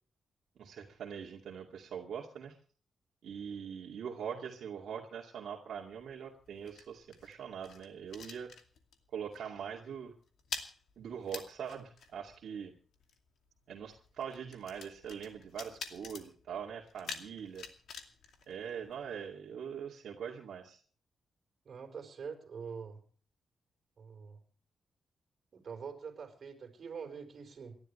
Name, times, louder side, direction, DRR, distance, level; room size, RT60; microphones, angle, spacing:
voice 1, 0.6-2.6 3.2-8.5 9.1-10.1 11.0-12.7 13.7-17.7 18.5-20.8, right 7 dB, 65° right, -1 dB, 2.4 m, -42 dB
sound 1, 5.7-9.1 9.3-9.6 9.9-19.3, left 6 dB, 70° left, 2.5 m, -48 dB
voice 2, 21.6-23.0 24.0-24.4 25.5-27.8, right 6 dB, 45° right, 4 dB, 4.8 m, -45 dB
29.0 x 12.0 x 3.3 m, 0.43 s
wide cardioid pair, 165°, 0 cm